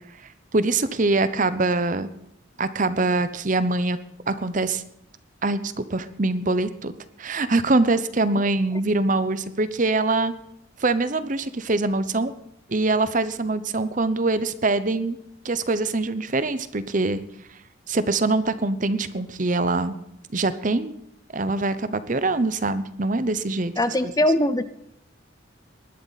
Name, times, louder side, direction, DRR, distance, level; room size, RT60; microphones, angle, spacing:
voice 1, 0.5-2.1 2.6-4.0 4.3-4.8 5.4-6.9 7.2-10.3 10.8-12.3 12.7-15.2 15.4-17.2 17.9-20.0 20.3-20.9 21.3-23.7 24.0-24.1, right 2 dB, 40° right, 13 dB, 0.8 m, -23 dB
voice 2, 23.8-24.6, left 1 dB, 15° left, 12 dB, 0.5 m, -21 dB
20.0 x 12.0 x 4.1 m, 0.77 s
head